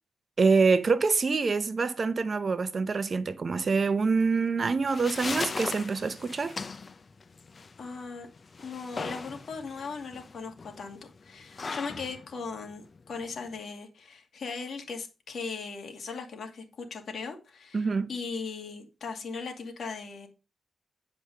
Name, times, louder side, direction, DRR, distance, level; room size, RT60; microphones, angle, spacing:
voice 1, 0.4-6.6 17.7-18.1, right 4 dB, 40° right, 0.8 m, -25 dB
sound 1, 4.6-13.6, left 4 dB, 40° left, 0.6 m, -39 dB
voice 2, 7.8-8.3 8.6-20.3, left 4 dB, 65° left, 2.3 m, -38 dB
10.0 x 5.2 x 5.3 m
cardioid pair, 100°, 0 cm